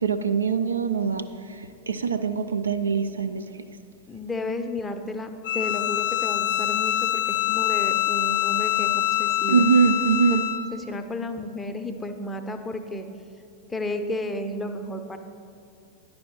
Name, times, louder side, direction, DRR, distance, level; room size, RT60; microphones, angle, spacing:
voice 1, 0.0-1.2 1.9-3.4 9.5-10.5, right 6 dB, 75° right, 11 dB, 0.3 m, -22 dB
voice 2, 4.1-9.6 10.3-10.4 10.7-13.1 13.7-15.2, left 2 dB, 10° left, 6 dB, 0.6 m, -32 dB
Bowed string instrument, 5.4-10.7, left 13 dB, 60° left, 0.4 m, -25 dB
10.0 x 5.3 x 4.5 m, 2.4 s
figure-of-eight pair, 90°, 0 cm